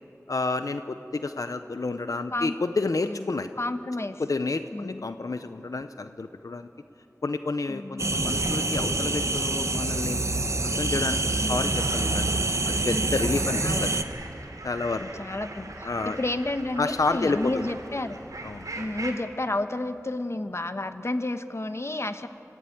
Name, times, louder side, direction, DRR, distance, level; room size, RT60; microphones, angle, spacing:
voice 1, 0.3-3.5 4.2-6.7 7.2-10.2 10.6-12.4 12.7-14.0 14.6-15.1 15.8-16.2 16.8-17.7 18.4-18.7, left 3 dB, 90° left, 9 dB, 0.7 m, -30 dB
voice 2, 3.0-4.2 4.7-5.1 7.7-8.1 11.4-11.7 13.5-13.8 15.0-18.2 18.7-22.3, left 2 dB, 50° left, 9 dB, 1.2 m, -31 dB
sound 1, 8.0-14.0, right 2 dB, 60° right, 1.1 m, -26 dB
sound 2, 12.5-19.1, right 2 dB, 90° right, 3.1 m, -41 dB
26.0 x 15.5 x 9.3 m, 3.0 s
wide cardioid pair, 40°, 6 cm